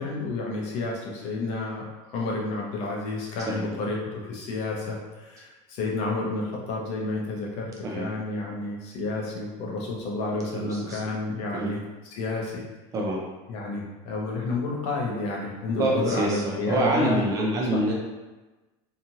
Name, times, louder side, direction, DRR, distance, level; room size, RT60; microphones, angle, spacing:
voice 1, 0.0-1.8 2.1-12.6 13.5-17.2 17.7-17.9, left 2 dB, 45° left, -2 dB, 0.7 m, -30 dB
voice 2, 10.5-11.0 11.5-11.7 12.9-13.2 15.8-17.9, right 1 dB, 25° right, -2 dB, 0.3 m, -26 dB
2.9 x 2.4 x 2.7 m, 1.2 s
cardioid pair, 165°, 14 cm